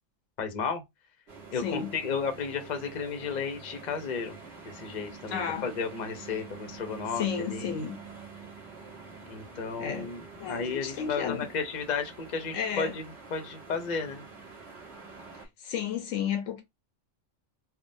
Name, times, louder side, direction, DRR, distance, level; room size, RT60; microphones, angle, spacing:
voice 1, 0.4-0.8 1.5-4.4 4.6-7.7 9.3-10.2 10.5-13.0 13.3-14.2, left 5 dB, 40° left, 0.8 m, -33 dB
sound 1, 1.3-15.5, right 4 dB, 60° right, 1.3 m, -46 dB
voice 2, 1.6-1.9 5.3-5.7 7.2-8.0 9.8-10.1 10.4-11.5 12.5-13.0 15.6-16.6, left 7 dB, 80° left, 1.1 m, -32 dB
3.5 x 2.2 x 2.6 m
omnidirectional pair, 1.3 m